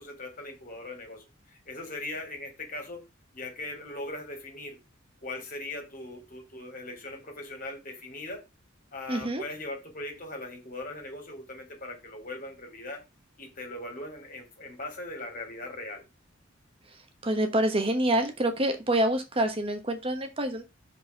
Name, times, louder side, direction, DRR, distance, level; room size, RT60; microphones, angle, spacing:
voice 1, 0.0-3.0 3.3-4.8 5.2-8.4 8.9-13.0 13.4-16.0, left 2 dB, 40° left, 3 dB, 3.4 m, -40 dB
voice 2, 9.1-9.4 17.2-20.6, right 1 dB, 25° right, 7 dB, 1.1 m, -26 dB
6.2 x 5.4 x 6.6 m, 0.25 s
head